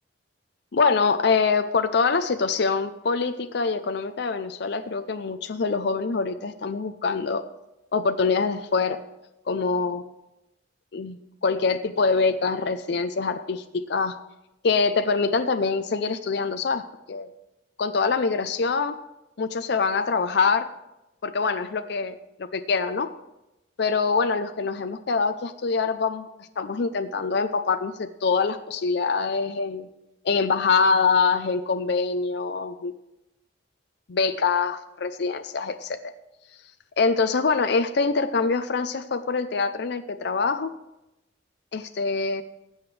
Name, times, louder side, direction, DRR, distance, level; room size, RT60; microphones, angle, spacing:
voice 1, 0.7-7.4 7.9-9.0 9.5-10.0 10.9-14.2 14.6-16.8 17.1-17.3 17.8-19.0 19.4-20.7 21.2-22.2 22.5-23.1 23.8-26.3 26.6-29.9 30.2-32.9 34.1-36.0 37.0-40.7 41.7-42.4, left 4 dB, 60° left, 9 dB, 0.5 m, -24 dB
19.0 x 7.9 x 3.3 m, 0.92 s
head